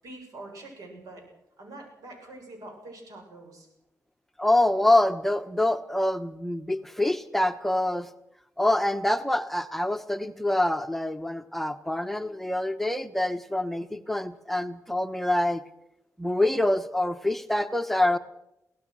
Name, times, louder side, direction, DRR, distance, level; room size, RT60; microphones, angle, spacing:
voice 1, 0.0-1.2 1.6-3.7, right 2 dB, 85° right, 3 dB, 7.5 m, -44 dB
voice 2, 4.4-8.1 8.6-15.6 16.2-18.2, left 1 dB, 5° left, 8 dB, 1.1 m, -25 dB
24.0 x 17.0 x 6.3 m, 0.87 s
cardioid pair, 95°, 6 cm